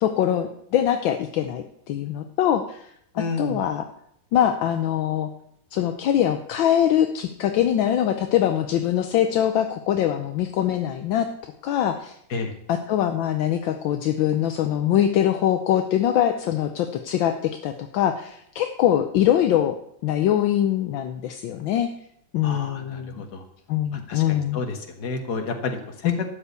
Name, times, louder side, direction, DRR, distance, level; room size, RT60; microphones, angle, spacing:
voice 1, 0.0-2.8 3.4-3.8 4.3-5.3 5.7-11.3 11.6-12.1 12.7-19.7 20.0-21.9 22.3-23.2 23.7-24.6 26.0-26.2, left 10 dB, 75° left, 6 dB, 1.5 m, -23 dB
voice 2, 3.2-3.6 12.3-12.5 22.4-23.4 23.9-26.3, left 4 dB, 55° left, 5 dB, 2.0 m, -31 dB
12.5 x 5.6 x 8.1 m, 0.70 s
omnidirectional pair, 2.1 m